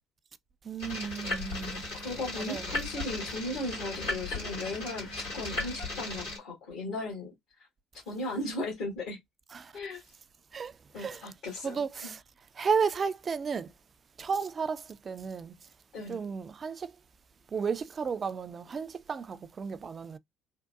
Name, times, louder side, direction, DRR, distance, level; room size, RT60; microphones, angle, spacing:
voice 1, 0.6-1.9 2.4-2.8 9.5-9.7 10.5-11.3 11.6-12.2 12.5-13.7 14.2-15.6 16.1-16.9 17.5-20.2, right 5 dB, 40° right, 0.4 m, -33 dB
sound 1, 0.8-6.4, left 2 dB, 85° left, 2.2 m, -36 dB
voice 2, 1.9-7.3 8.1-9.2 9.7-10.0 10.9-12.1 15.9-16.2, left 2 dB, 65° left, 1.5 m, -37 dB
3.7 x 2.2 x 2.2 m
hypercardioid pair, 55°, 0 cm